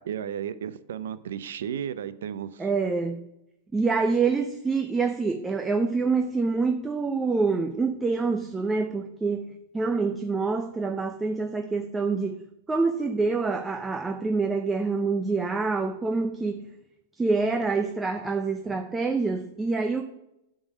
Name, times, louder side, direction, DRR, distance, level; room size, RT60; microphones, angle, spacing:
voice 1, 0.0-2.7, right 9 dB, 80° right, 0.6 m, -34 dB
voice 2, 2.6-3.2 3.7-12.4 12.7-16.7 17.2-20.0, right 4 dB, 10° right, 0.5 m, -26 dB
8.6 x 3.8 x 6.2 m
supercardioid pair, 140°, 0 cm